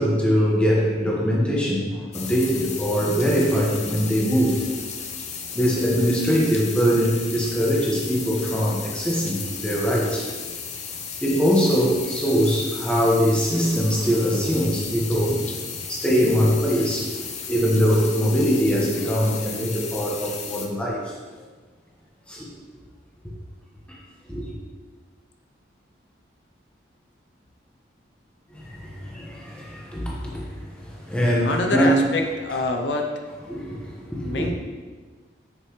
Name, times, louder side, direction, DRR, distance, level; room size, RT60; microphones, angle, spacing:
voice 1, 0.0-4.6 5.5-10.2 11.2-15.4 15.9-17.1 17.5-21.1 22.3-22.5 24.3-24.5 28.5-30.5 30.8-32.0 33.5-34.4, equal, 5° left, -5 dB, 1.3 m, -22 dB
sound 1, 2.1-20.7, left 6 dB, 35° left, 0.7 m, -34 dB
voice 2, 31.4-33.1 34.2-34.5, left 2 dB, 70° left, 3 dB, 0.7 m, -25 dB
7.2 x 6.8 x 3.2 m, 1.4 s
head